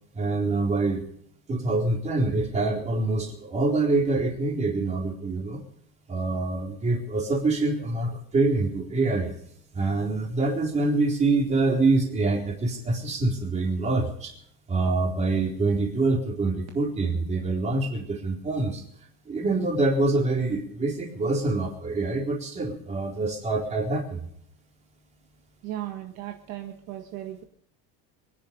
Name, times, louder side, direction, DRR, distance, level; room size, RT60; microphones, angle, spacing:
voice 1, 0.1-1.0 1.5-5.6 6.1-9.3 9.7-14.3 14.7-18.8 19.3-24.2, right 3 dB, 20° right, 1 dB, 4.0 m, -25 dB
voice 2, 25.6-27.4, right 13 dB, 50° right, 3 dB, 1.8 m, -36 dB
24.0 x 10.5 x 5.2 m, 0.70 s
cardioid pair, 170°, 31 cm